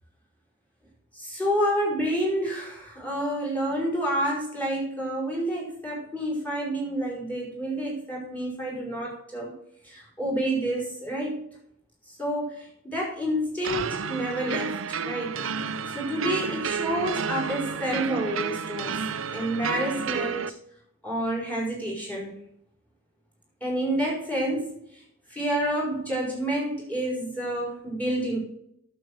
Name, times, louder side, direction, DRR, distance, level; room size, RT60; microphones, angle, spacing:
voice 1, 1.1-9.5 9.8-11.4 12.1-15.3 15.9-19.0 19.3-20.5 21.0-22.4 23.6-24.7 25.3-28.4, right 1 dB, 5° left, -2 dB, 4.8 m, -29 dB
sound 1, 13.6-20.5, right 6 dB, 75° right, 0.7 m, -31 dB
9.2 x 7.7 x 6.5 m, 0.73 s
head